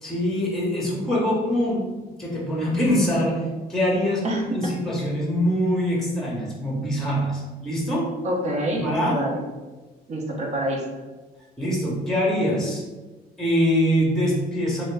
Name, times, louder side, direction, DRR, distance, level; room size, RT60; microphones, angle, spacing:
voice 1, 0.0-1.9 2.2-3.4 3.7-8.1 8.7-9.2 11.6-12.8 13.4-14.8, equal, ahead, -4 dB, 0.8 m, -24 dB
voice 2, 8.2-9.4 10.1-10.8, right 1 dB, 40° right, 0 dB, 0.7 m, -26 dB
2.7 x 2.6 x 3.2 m, 1.2 s
cardioid pair, 110°, 17 cm